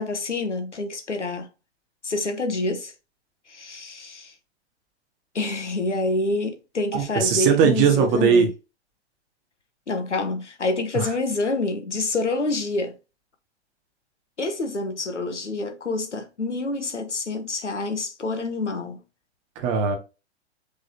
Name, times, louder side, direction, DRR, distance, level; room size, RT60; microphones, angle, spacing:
voice 1, 0.0-1.5 2.0-2.9 3.5-4.3 5.3-8.5 9.9-12.9 14.4-19.0, left 2 dB, 90° left, 1.2 m, -27 dB
voice 2, 6.9-8.5 10.9-11.1 19.5-20.0, right 6 dB, 35° right, 1.5 m, -19 dB
5.1 x 3.7 x 2.8 m
figure-of-eight pair, 110°, 34 cm